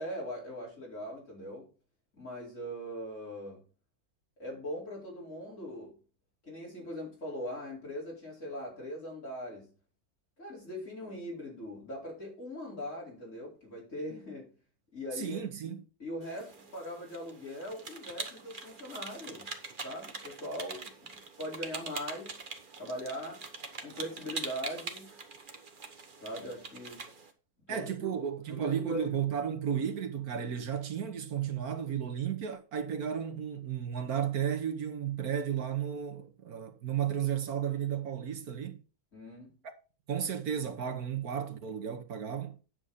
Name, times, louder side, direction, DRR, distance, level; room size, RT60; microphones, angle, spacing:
voice 1, 0.0-1.7 2.1-3.6 4.4-6.0 6.4-9.7 10.4-14.5 14.9-15.4 16.0-19.5 19.8-21.1 21.4-22.4 22.8-23.5 23.8-25.1 26.2-27.1 27.7-28.1 28.5-29.2 39.1-39.5, equal, 55° left, 5.0 m, -40 dB
voice 2, 15.1-15.8 27.7-38.8 40.1-42.6, right 8 dB, 80° right, 1.6 m, -33 dB
sound 1, 16.2-27.3, right 4 dB, 40° right, 1.1 m, -44 dB
9.8 x 6.4 x 4.1 m
omnidirectional pair, 1.6 m